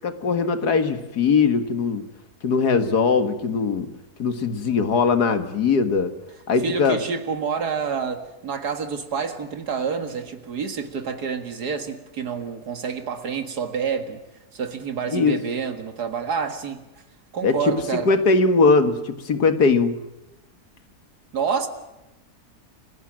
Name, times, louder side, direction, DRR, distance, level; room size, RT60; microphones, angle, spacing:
voice 1, 0.0-2.1 2.4-3.9 4.2-6.1 6.5-7.0 15.1-15.3 17.4-20.0, left 4 dB, 80° left, 9 dB, 2.2 m, -20 dB
voice 2, 6.6-14.2 14.5-16.8 17.3-18.1 21.3-21.7, right 6 dB, 80° right, 7 dB, 2.4 m, -28 dB
29.5 x 17.0 x 7.6 m, 0.96 s
omnidirectional pair, 1.7 m